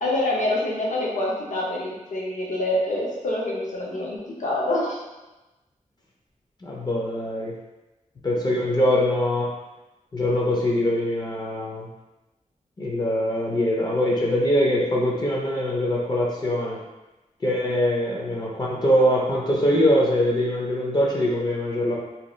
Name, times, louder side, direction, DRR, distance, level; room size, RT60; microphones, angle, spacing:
voice 1, 0.0-5.0, left 1 dB, 70° left, -3 dB, 0.7 m, -26 dB
voice 2, 6.6-7.5 8.2-9.5 10.1-11.9 12.8-16.8 17.4-21.9, equal, 30° left, -3 dB, 0.5 m, -23 dB
2.8 x 2.3 x 3.0 m, 1.1 s
wide cardioid pair, 150°, 13 cm